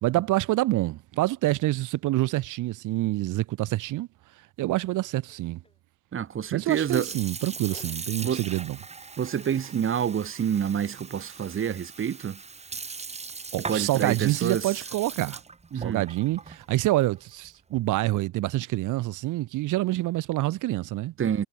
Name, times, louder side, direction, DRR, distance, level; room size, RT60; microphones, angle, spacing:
voice 1, 0.0-4.1 4.6-5.6 6.5-8.8 13.5-15.4 15.7-21.1, right 17 dB, 85° right, 0.9 m, -27 dB
sound 1, 3.1-3.3 4.9-5.8 6.7-7.3 7.5-8.5, left 3 dB, 20° left, 2.8 m, -53 dB
voice 2, 6.1-7.1 8.2-8.4 9.2-12.4 13.7-14.7 15.7-16.1 21.2-21.5, right 8 dB, 45° right, 1.2 m, -28 dB
Sink (filling or washing) / Fill (with liquid), 6.6-18.1, right 4 dB, 20° right, 1.0 m, -40 dB
cardioid pair, 90°, 30 cm